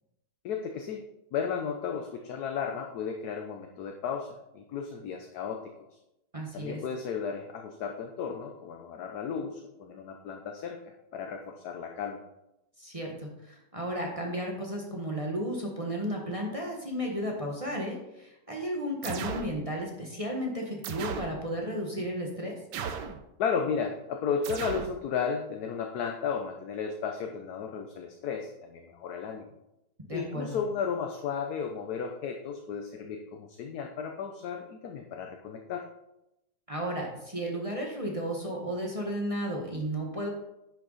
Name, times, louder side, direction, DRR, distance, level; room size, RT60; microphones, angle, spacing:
voice 1, 0.4-1.0 1.3-5.7 6.5-12.2 19.8-19.9 23.4-29.5 30.1-35.9, left 6 dB, 65° left, 3 dB, 1.3 m, -34 dB
voice 2, 6.3-6.8 12.8-22.6 30.1-30.6 36.7-40.3, equal, 20° right, -1 dB, 1.4 m, -33 dB
sound 1, 19.0-19.6 20.8-21.4 22.7-23.2 24.4-25.0, right 7 dB, 75° right, 1.3 m, -36 dB
10.5 x 6.8 x 4.1 m, 0.88 s
omnidirectional pair, 1.9 m